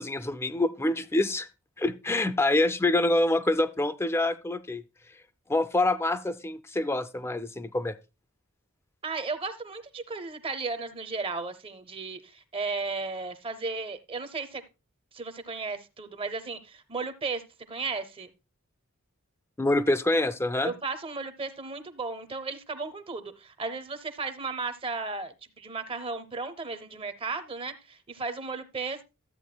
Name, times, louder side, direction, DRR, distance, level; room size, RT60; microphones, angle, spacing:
voice 1, 0.0-1.5 1.8-4.8 5.5-8.0 19.6-20.7, left 2 dB, 10° left, 0.4 m, -26 dB
voice 2, 9.0-14.6 15.1-18.3 20.6-29.0, right 4 dB, 25° right, 0.7 m, -35 dB
13.0 x 8.1 x 2.2 m
head